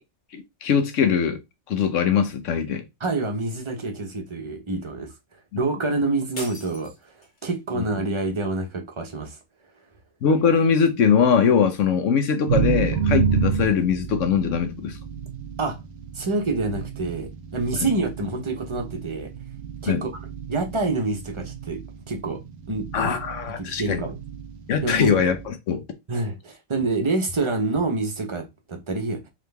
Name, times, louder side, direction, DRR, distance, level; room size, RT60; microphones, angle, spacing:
voice 1, 0.3-1.4 1.7-2.8 7.8-7.9 10.2-15.0 17.8-17.9 19.9-20.0 22.9-24.0 24.7-25.8, left 6 dB, 70° left, 1.1 m, -21 dB
voice 2, 2.7-5.1 5.5-9.4 15.6-15.8 16.1-19.3 19.8-20.1 20.5-21.8 22.1-22.4 22.7-23.1 23.6-24.2 24.8-25.2 26.1-29.3, right 3 dB, 30° right, 0.7 m, -27 dB
sound 1, 6.4-7.6, left 1 dB, 40° left, 1.4 m, -40 dB
sound 2, 12.5-25.5, right 6 dB, 60° right, 0.8 m, -30 dB
3.7 x 3.2 x 3.3 m
omnidirectional pair, 1.3 m